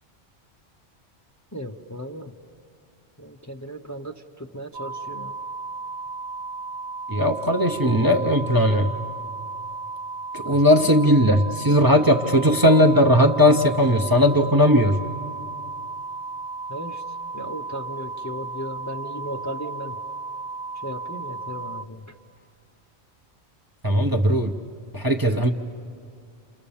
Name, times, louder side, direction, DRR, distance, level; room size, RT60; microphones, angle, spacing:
voice 1, 1.5-2.3 3.2-5.4 10.5-11.0 16.7-17.0 17.3-20.0 20.8-22.1, equal, 20° left, 2 dB, 0.8 m, -36 dB
sound 1, 4.7-21.9, right 3 dB, 80° right, 1.2 m, -34 dB
voice 2, 7.1-8.9 10.3-15.0 23.8-24.5 24.9-25.5, equal, 25° right, 3 dB, 0.7 m, -18 dB
29.5 x 28.0 x 7.1 m, 2.3 s
omnidirectional pair, 1.1 m